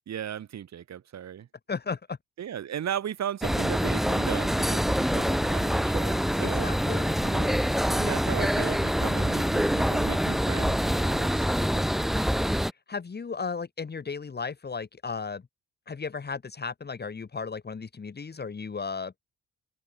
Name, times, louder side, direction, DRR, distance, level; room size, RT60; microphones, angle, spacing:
voice 1, 0.0-1.5 2.4-6.7 7.2-7.6 7.9-12.1, right 9 dB, 60° right, 4.5 m, -37 dB
voice 2, 1.7-2.2 6.4-7.2 12.9-15.4 15.9-19.1, left 5 dB, 35° left, 3.2 m, -35 dB
sound 1, 3.4-12.7, equal, ahead, 0.9 m, -25 dB
open air
cardioid pair, 90°, 30 cm